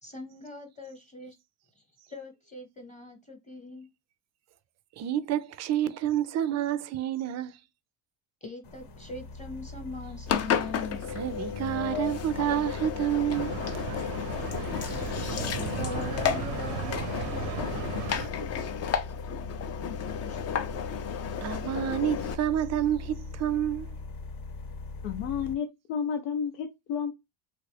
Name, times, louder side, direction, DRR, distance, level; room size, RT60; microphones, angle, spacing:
voice 1, 0.0-1.4 2.1-3.9 8.4-11.0 15.2-17.5 20.2-20.5, left 2 dB, 15° left, 0.9 m, -41 dB
voice 2, 5.0-7.5 11.2-14.0 18.8-18.9 21.4-24.0, right 11 dB, 35° right, 0.4 m, -29 dB
sound 1, 8.6-25.5, left 3 dB, 55° left, 0.9 m, -40 dB
Engine, 10.3-22.3, left 8 dB, 35° left, 0.4 m, -33 dB
sound 2, 13.3-18.3, right 9 dB, 90° right, 0.7 m, -36 dB
voice 3, 25.0-27.1, left 7 dB, 90° left, 0.7 m, -31 dB
3.1 x 2.4 x 3.2 m
supercardioid pair, 105°, 48 cm